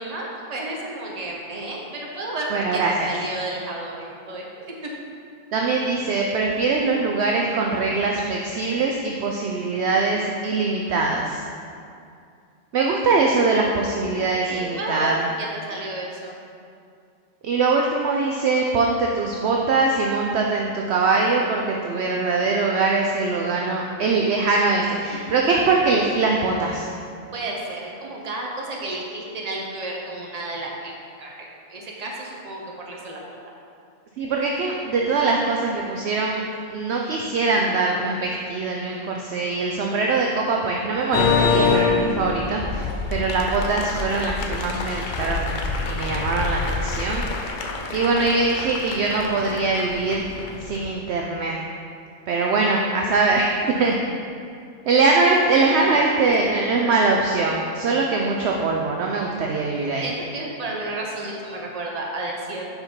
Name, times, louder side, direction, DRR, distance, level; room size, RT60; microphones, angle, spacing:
voice 1, 0.0-1.8 2.1-2.8 3.0-4.4 14.4-15.2 15.7-16.3 25.1-25.5 27.3-30.9 31.2-33.2 55.8-56.1 60.0-62.6, right 2 dB, 35° right, -2 dB, 0.9 m, -32 dB
voice 2, 2.5-3.1 5.5-11.4 12.7-15.3 17.4-26.9 34.2-36.4 36.7-47.2 47.9-50.2 50.6-51.6 52.3-54.0 54.9-60.1, right 3 dB, 65° right, 0 dB, 0.7 m, -22 dB
sound 1, 41.1-50.9, left 4 dB, 65° left, 0.5 m, -26 dB
5.6 x 5.2 x 4.4 m, 2.4 s
omnidirectional pair, 1.3 m